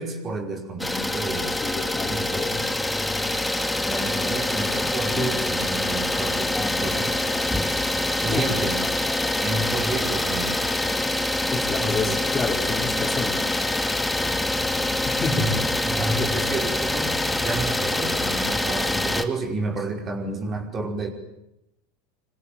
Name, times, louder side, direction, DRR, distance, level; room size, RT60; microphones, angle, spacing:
voice 1, 0.0-1.6 2.1-2.7 3.8-7.2 8.2-8.8 9.4-10.6 11.8-12.1 15.3-21.1, right 2 dB, 30° right, 4 dB, 5.2 m, -30 dB
Idling, 0.8-19.2, left 1 dB, 5° left, 2.3 m, -25 dB
voice 2, 1.5-2.6 5.1-5.3 8.3-8.4 11.5-13.5 15.0-15.6 16.2-16.3, left 4 dB, 25° left, 3 dB, 5.0 m, -29 dB
26.0 x 25.5 x 9.0 m, 0.85 s
figure-of-eight pair, 85°, 0 cm